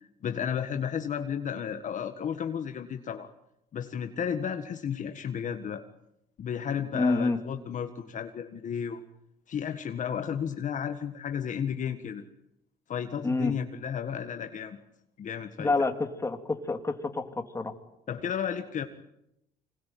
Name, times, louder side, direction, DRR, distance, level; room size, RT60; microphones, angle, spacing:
voice 1, 0.2-3.3 3.7-5.8 6.4-9.0 9.5-12.2 12.9-14.8 15.2-15.7 18.1-18.8, left 8 dB, 50° left, 7 dB, 1.7 m, -33 dB
voice 2, 6.9-7.4 13.2-13.5 15.6-17.7, left 3 dB, 15° left, 6 dB, 2.9 m, -28 dB
26.0 x 20.5 x 9.4 m, 0.82 s
cardioid pair, 110°, 17 cm